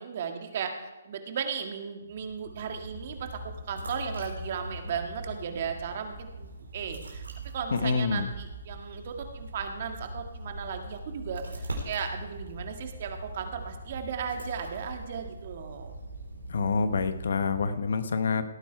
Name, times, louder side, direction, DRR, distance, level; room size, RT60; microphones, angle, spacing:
voice 1, 0.0-3.3 3.7-7.3 7.5-15.9, right 7 dB, 45° right, 4 dB, 1.8 m, -36 dB
sound 1, 2.0-17.9, right 1 dB, 90° right, 3.7 m, -41 dB
voice 2, 7.7-8.3 16.5-18.4, left 4 dB, 65° left, 11 dB, 1.1 m, -27 dB
18.0 x 9.1 x 4.6 m, 1.0 s
hypercardioid pair, 145°, 0 cm